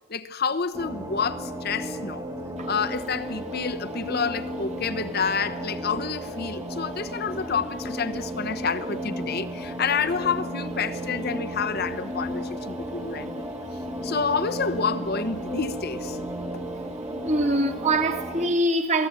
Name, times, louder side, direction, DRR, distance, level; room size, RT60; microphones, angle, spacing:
voice 1, 0.1-2.2 2.7-13.5 14.0-16.2, left 5 dB, 50° left, 1.0 m, -29 dB
sound 1, 0.7-18.5, right 1 dB, 15° right, 2.4 m, -34 dB
voice 2, 17.2-19.1, right 1 dB, 35° right, 2.4 m, -23 dB
27.5 x 18.5 x 9.3 m
head